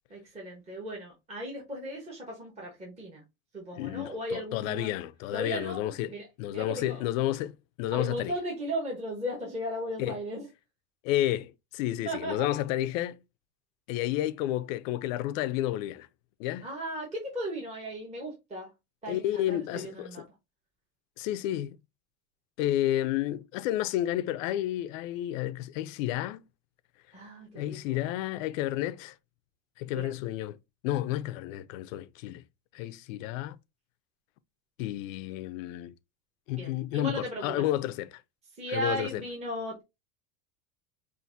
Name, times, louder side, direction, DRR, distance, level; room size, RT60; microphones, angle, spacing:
voice 1, 0.1-3.2 3.5-4.9 5.3-7.0 7.9-10.5 12.0-12.5 16.6-18.7 19.0-20.2 27.1-28.1 29.9-30.1 36.6-37.5 38.5-39.8, equal, 15° right, 1.2 m, -36 dB
voice 2, 3.8-6.1 6.4-8.3 10.0-10.1 11.0-13.2 13.9-16.1 16.4-16.7 19.1-20.2 21.2-21.8 22.6-26.5 27.5-29.2 29.8-30.6 30.8-32.4 32.7-33.6 34.8-35.9 36.5-38.2 38.7-39.2, left 13 dB, 70° left, 0.6 m, -31 dB
5.6 x 2.6 x 2.6 m
supercardioid pair, 155°, 41 cm